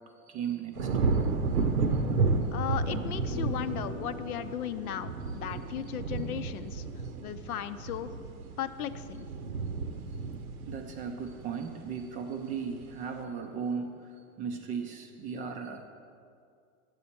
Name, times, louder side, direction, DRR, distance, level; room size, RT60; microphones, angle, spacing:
voice 1, 0.3-0.9 10.7-13.9 14.4-15.9, right 6 dB, 20° right, 5 dB, 0.3 m, -36 dB
sound 1, 0.8-12.0 12.5-12.9, right 3 dB, 80° right, 0.9 m, -32 dB
voice 2, 2.5-6.8 7.2-8.1 8.6-9.3, left 10 dB, 80° left, 12 dB, 0.6 m, -36 dB
sound 2, 2.7-8.0, left 3 dB, 5° right, 0.7 m, -47 dB
9.7 x 7.4 x 4.3 m, 2.3 s
hypercardioid pair, 105°, 43 cm